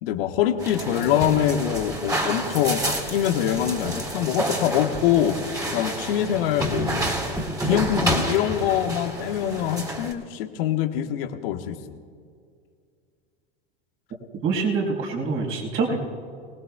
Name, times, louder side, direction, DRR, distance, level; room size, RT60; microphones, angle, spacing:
voice 1, 0.0-5.4 5.7-7.1 7.6-12.0, left 10 dB, 65° left, 7 dB, 1.3 m, -24 dB
sound 1, 0.6-10.1, right 1 dB, 10° right, 3.2 m, -29 dB
voice 2, 14.4-16.0, right 4 dB, 45° right, 0 dB, 4.4 m, -25 dB
25.5 x 19.5 x 2.3 m, 2.2 s
hypercardioid pair, 85°, 31 cm